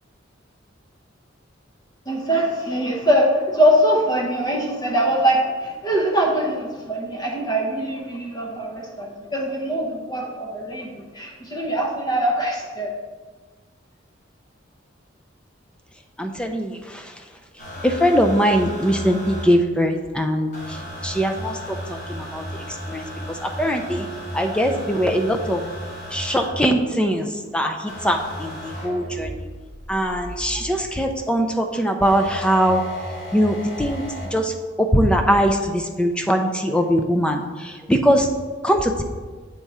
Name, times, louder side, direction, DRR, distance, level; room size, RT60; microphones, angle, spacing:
voice 1, 2.1-12.9, equal, 20° left, -2 dB, 0.8 m, -22 dB
voice 2, 16.2-16.8 17.8-20.5 21.0-22.5 22.9-23.1 23.4-24.1 24.3-25.6 26.1-27.3 27.5-29.4 29.9-32.8 33.3-34.0 34.3-34.5 34.8-38.3 38.6-39.0, equal, 5° left, 4 dB, 0.4 m, -21 dB
sound 1, 17.6-19.4 20.5-26.5 27.9-30.8 32.0-34.3 35.5-35.6, equal, 40° left, 1.4 m, -34 dB
8.0 x 3.6 x 4.1 m, 1.4 s
head